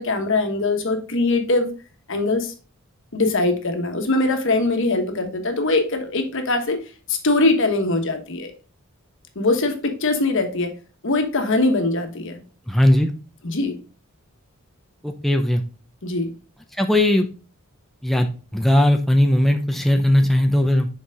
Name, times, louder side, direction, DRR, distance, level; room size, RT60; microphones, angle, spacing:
voice 1, 0.0-1.7 2.1-2.5 3.1-6.8 7.1-8.5 9.3-10.7 11.0-12.4 13.4-13.8 16.0-16.3, left 2 dB, 65° left, 6 dB, 1.3 m, -22 dB
voice 2, 12.7-13.1 15.0-15.6 16.8-17.3 18.0-20.9, left 1 dB, ahead, 4 dB, 0.5 m, -18 dB
6.7 x 4.7 x 3.6 m, 0.36 s
head